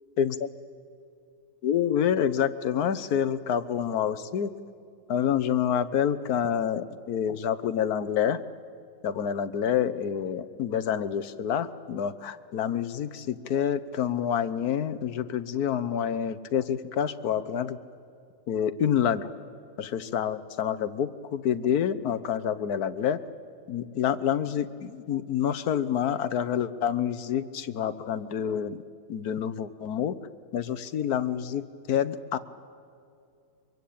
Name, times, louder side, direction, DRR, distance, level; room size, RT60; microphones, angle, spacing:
voice 1, 0.2-0.5 1.6-4.5 5.1-8.4 9.0-17.8 18.5-19.3 19.8-23.2 23.7-28.8 29.1-30.1 30.5-32.4, left 9 dB, 75° left, 13 dB, 1.4 m, -27 dB
24.0 x 23.5 x 8.6 m, 2.5 s
omnidirectional pair, 1.6 m